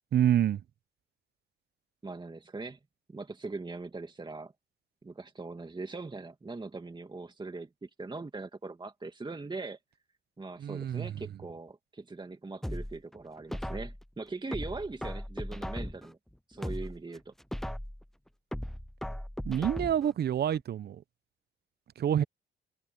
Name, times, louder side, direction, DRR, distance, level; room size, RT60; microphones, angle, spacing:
voice 1, 0.1-0.6 10.6-11.1 19.4-21.0 22.0-22.2, right 10 dB, 55° right, 0.7 m, -27 dB
voice 2, 2.0-2.8 3.1-4.5 5.0-9.8 10.4-16.2 16.5-17.3, right 3 dB, 25° right, 2.3 m, -41 dB
sound 1, 12.6-14.0 14.5-16.1 16.5-18.0 18.5-20.1 20.5-20.6, equal, ahead, 0.4 m, -37 dB
cardioid pair, 75°, 20 cm